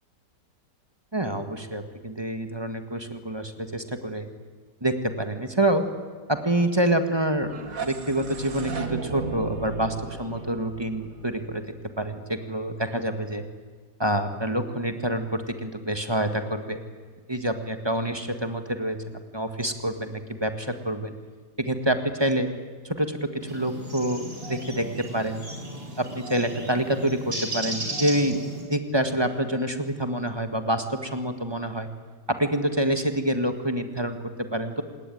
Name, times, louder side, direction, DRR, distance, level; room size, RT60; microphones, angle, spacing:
voice 1, 1.1-4.3 4.8-5.9 6.3-7.5 7.8-11.7 12.0-13.4 14.0-16.8 17.3-21.1 21.6-22.5 22.8-25.4 26.0-31.9 32.3-34.8, right 1 dB, 15° right, 7 dB, 1.5 m, -27 dB
sound 1, 7.4-12.3, right 5 dB, 50° right, 2.1 m, -36 dB
sound 2, 23.4-28.6, right 1 dB, 30° right, 5.6 m, -35 dB
27.5 x 19.5 x 9.3 m, 1.5 s
omnidirectional pair, 1.9 m